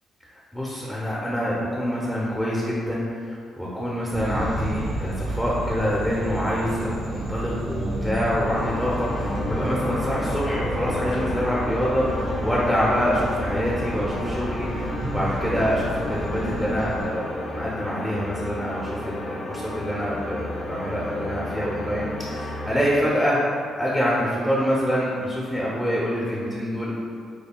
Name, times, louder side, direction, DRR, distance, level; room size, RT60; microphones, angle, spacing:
voice 1, 0.5-23.4 23.8-26.9, equal, 5° left, -6 dB, 0.6 m, -26 dB
sound 1, 4.1-17.0, right 1 dB, 85° right, 1.4 m, -31 dB
sound 2, 8.4-22.8, left 1 dB, 45° left, 0.6 m, -32 dB
5.3 x 2.2 x 2.2 m, 2.3 s
cardioid pair, 90°, 0 cm